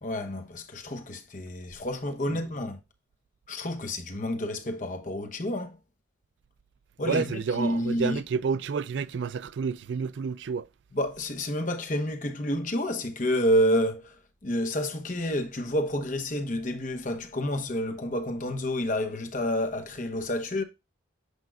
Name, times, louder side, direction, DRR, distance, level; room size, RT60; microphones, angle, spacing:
voice 1, 0.0-2.8 3.5-5.8 7.0-8.2 10.9-20.6, left 1 dB, 40° left, 0.9 m, -29 dB
voice 2, 7.0-10.7, right 5 dB, 70° right, 0.4 m, -30 dB
8.1 x 5.2 x 2.3 m
head